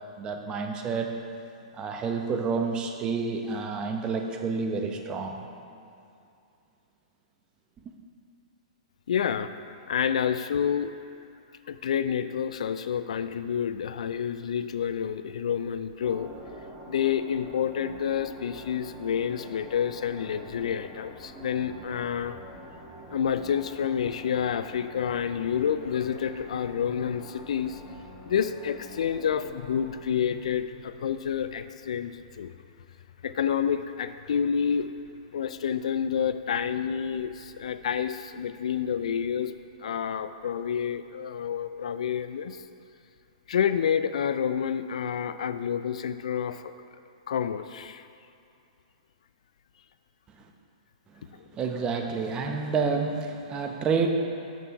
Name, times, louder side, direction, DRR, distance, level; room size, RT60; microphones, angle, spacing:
voice 1, 0.2-1.1 1.8-5.4 7.8-7.9 51.2-51.3 51.5-54.1, right 5 dB, 25° right, 3 dB, 0.8 m, -29 dB
voice 2, 9.1-9.5 9.9-10.9 11.7-16.3 16.9-22.4 23.1-27.8 28.3-32.5 33.2-34.9 35.3-39.5 39.8-42.6 43.5-46.7 47.3-48.1, left 8 dB, 70° left, 11 dB, 0.4 m, -29 dB
sound 1, 16.0-30.0, right 1 dB, 5° right, 1.4 m, -46 dB
8.0 x 6.2 x 4.6 m, 2.6 s
hypercardioid pair, 120°, 4 cm